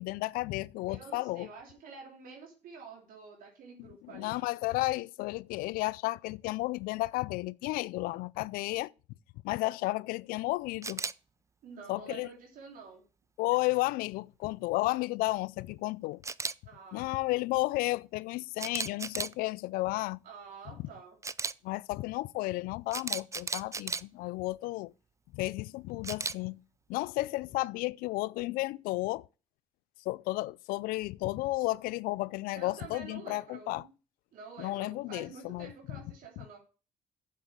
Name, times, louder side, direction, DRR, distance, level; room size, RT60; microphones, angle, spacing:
voice 1, 0.0-1.5 4.1-8.9 9.4-11.0 11.9-12.3 13.4-16.2 16.9-20.2 21.6-24.9 25.3-26.6 26.9-29.3 30.1-33.8 34.6-36.0, left 20 dB, 90° left, 0.4 m, -33 dB
voice 2, 0.9-4.4 11.6-13.0 16.6-17.2 20.2-21.2 32.6-33.9 34.3-36.6, right 5 dB, 70° right, 2.9 m, -48 dB
Camera, 10.8-11.1 16.2-16.5 18.6-19.3 21.2-21.5 22.9-24.0 26.0-26.3, right 4 dB, 20° right, 0.5 m, -34 dB
7.5 x 7.4 x 7.1 m
cardioid pair, 90°, 15 cm